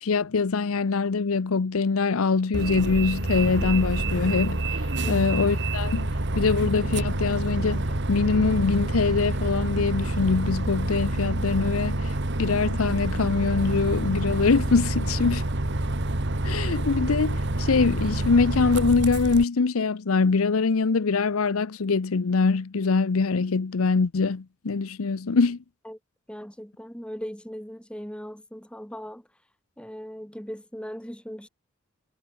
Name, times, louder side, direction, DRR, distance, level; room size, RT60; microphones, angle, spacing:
voice 1, 0.0-6.1 6.3-15.5 16.4-25.6, left 4 dB, 85° left, 0.7 m, -23 dB
Bus, 2.5-19.4, right 1 dB, 55° right, 1.9 m, -27 dB
voice 2, 26.3-29.3 29.8-31.5, equal, 5° left, 7.2 m, -38 dB
head